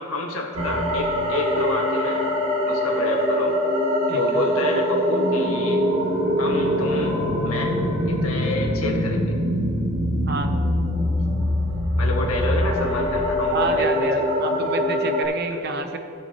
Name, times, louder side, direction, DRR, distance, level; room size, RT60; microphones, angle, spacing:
voice 1, 0.0-2.3 2.7-3.6 4.1-5.8 6.4-7.2 7.4-7.8 8.1-9.4 12.0-14.6 15.5-15.6, left 2 dB, 80° left, -1 dB, 1.7 m, -28 dB
sound 1, 0.5-15.2, equal, 80° right, 1.8 m, -23 dB
voice 2, 4.1-4.4 10.3-10.5 13.5-16.0, right 3 dB, 45° right, 6 dB, 0.7 m, -28 dB
17.0 x 7.2 x 2.9 m, 2.8 s
head